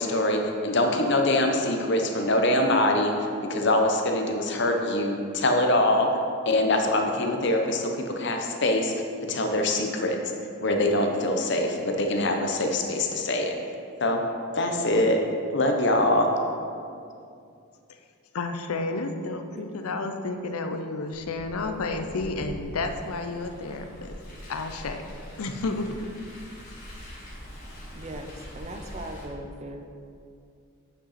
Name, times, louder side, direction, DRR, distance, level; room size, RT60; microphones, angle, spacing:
voice 1, 0.0-6.1 6.5-8.9 9.2-10.2 10.6-13.5 14.0-14.2 14.5-15.2 15.5-16.4, left 1 dB, 50° left, 3 dB, 0.8 m, -24 dB
voice 2, 18.3-24.1 24.5-25.0 25.4-26.0, left 3 dB, 85° left, 6 dB, 0.6 m, -31 dB
voice 3, 19.5-20.1 27.9-29.9, right 1 dB, 30° right, 4 dB, 0.5 m, -39 dB
Car, 21.1-29.2, equal, 35° left, 2.0 m, -43 dB
8.6 x 5.6 x 4.2 m, 2.4 s
head